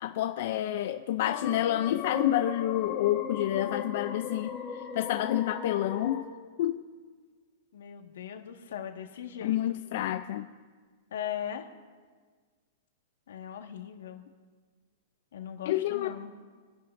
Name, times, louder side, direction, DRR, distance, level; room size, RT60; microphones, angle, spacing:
voice 1, 0.0-6.3 6.6-6.8 9.4-10.5 15.7-16.1, left 13 dB, 45° left, 7 dB, 0.4 m, -29 dB
sound 1, 1.2-6.2, left 6 dB, 20° left, 1.4 m, -38 dB
voice 2, 7.7-9.6 11.1-11.7 13.3-14.2 15.3-16.3, left 9 dB, 75° left, 4 dB, 1.5 m, -39 dB
29.0 x 11.0 x 2.6 m, 1.5 s
supercardioid pair, 175°, 0 cm